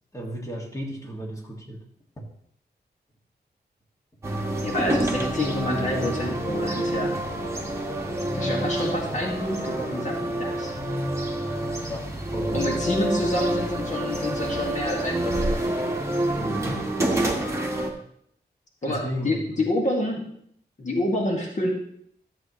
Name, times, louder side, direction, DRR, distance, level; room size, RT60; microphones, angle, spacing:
voice 1, 0.1-1.8 2.2-2.3 11.9-12.9 16.4-16.9 18.9-19.7, equal, 20° left, 0 dB, 2.0 m, -34 dB
sound 1, 4.2-17.9, right 1 dB, 15° right, 1.5 m, -27 dB
voice 2, 4.6-7.1 8.3-10.7 12.5-15.5 18.8-20.2 20.8-21.7, left 1 dB, 45° left, -1 dB, 1.8 m, -28 dB
13.5 x 7.7 x 3.1 m, 0.69 s
wide cardioid pair, 110°, 17 cm